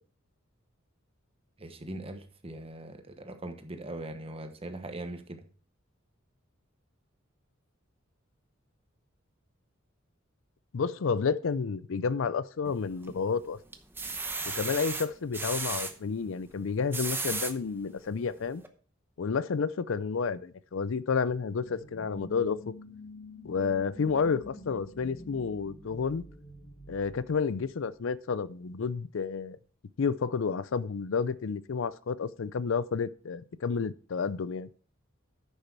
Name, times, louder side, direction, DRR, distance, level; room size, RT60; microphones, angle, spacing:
voice 1, 1.6-5.4, right 1 dB, 30° right, 1.1 m, -41 dB
voice 2, 10.7-13.6 14.5-18.6 19.2-22.6 23.4-26.3 26.9-29.6 30.0-34.7, left 5 dB, 65° left, 0.5 m, -30 dB
sound 1, 12.6-13.3 13.7-15.9 16.7-17.5 18.1-18.2 18.6-18.7, right 3 dB, 10° right, 0.8 m, -34 dB
sound 2, 21.6-28.0, left 1 dB, 40° left, 3.1 m, -48 dB
9.9 x 6.7 x 4.6 m
head